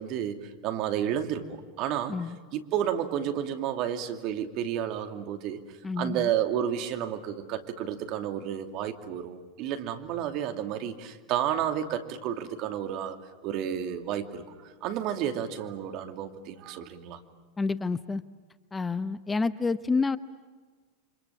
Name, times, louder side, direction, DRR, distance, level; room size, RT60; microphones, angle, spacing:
voice 1, 0.0-2.1 2.5-5.6 6.0-13.2 13.4-14.5 14.8-17.2, right 10 dB, 50° right, 6 dB, 2.6 m, -31 dB
voice 2, 5.8-6.3 17.6-18.2 18.7-20.2, left 4 dB, 15° left, 14 dB, 0.9 m, -28 dB
29.5 x 26.0 x 7.3 m, 1.4 s
hypercardioid pair, 95°, 0 cm